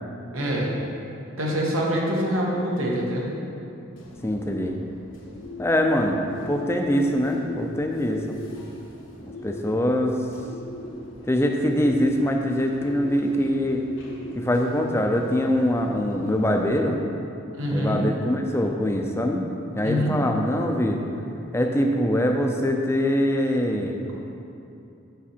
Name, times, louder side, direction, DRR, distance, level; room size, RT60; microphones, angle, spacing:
voice 1, 0.3-0.9 1.4-3.4 17.5-18.0 19.8-20.2, equal, 90° right, -3 dB, 1.4 m, -25 dB
Bird, 4.0-16.7, left 1 dB, 70° left, 1.1 m, -41 dB
voice 2, 4.2-4.8 5.6-6.2 6.5-8.4 9.2-10.2 11.3-13.8 14.3-17.0 17.7-19.4 19.8-21.0 21.5-24.0, equal, 10° left, 2 dB, 0.5 m, -23 dB
7.2 x 5.9 x 4.4 m, 2.7 s
head